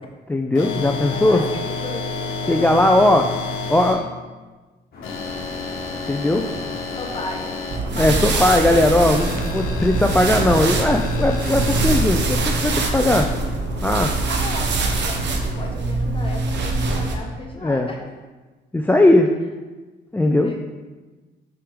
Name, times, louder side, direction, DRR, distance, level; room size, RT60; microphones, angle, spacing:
voice 1, 0.3-1.4 2.5-3.3 3.7-4.0 6.1-6.5 8.0-13.3 13.8-14.1 17.6-17.9 18.7-19.3 20.1-20.5, left 1 dB, 10° left, 3 dB, 0.3 m, -18 dB
sound 1, 0.5-3.9 5.0-7.8 9.1-12.0, left 3 dB, 85° left, 1.0 m, -30 dB
voice 2, 1.1-2.1 2.4-3.3 6.2-6.5 6.9-7.5 7.8-8.6 14.0-18.1 20.2-20.6, left 2 dB, 25° left, 0 dB, 1.2 m, -35 dB
sound 2, 4.9-15.7, left 2 dB, 50° left, 1.4 m, -37 dB
sound 3, 7.7-17.2, right 3 dB, 65° right, 0.8 m, -23 dB
5.8 x 4.9 x 3.6 m, 1.2 s
cardioid pair, 90°, 20 cm